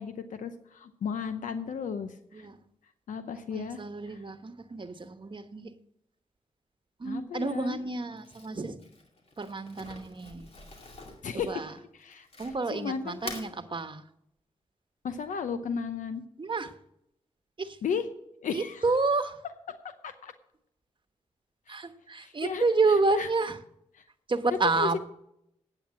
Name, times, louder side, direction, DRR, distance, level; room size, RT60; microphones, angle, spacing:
voice 1, 0.0-2.5 3.1-4.2 7.0-7.8 11.2-11.7 11.9-13.5 15.0-16.2 17.8-18.1 18.4-18.8 19.7-19.8 20.0-20.3 21.7-21.8 22.2-22.6 23.1-23.3 23.9-24.0 24.6-25.0, left 6 dB, 85° left, 0.7 m, -35 dB
voice 2, 3.5-5.7 7.0-8.8 9.4-10.5 11.5-11.7 12.4-14.0 16.4-16.7 17.6-17.8 18.5-19.4 21.7-23.6 24.3-25.0, right 3 dB, 40° right, 1.1 m, -29 dB
Crumpling crinkling, 8.2-12.8 13.1-13.5, left 2 dB, 50° left, 2.5 m, -45 dB
8.6 x 8.6 x 7.4 m
cardioid pair, 50°, 13 cm